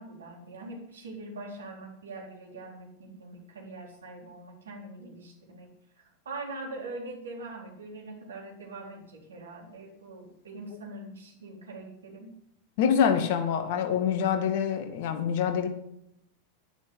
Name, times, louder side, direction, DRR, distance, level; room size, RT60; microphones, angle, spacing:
voice 1, 0.0-5.7 6.3-12.3, right 2 dB, 65° right, 0 dB, 3.9 m, -42 dB
voice 2, 12.8-15.7, left 7 dB, 50° left, 7 dB, 2.0 m, -25 dB
10.5 x 10.5 x 6.8 m, 0.79 s
figure-of-eight pair, 90°, 0 cm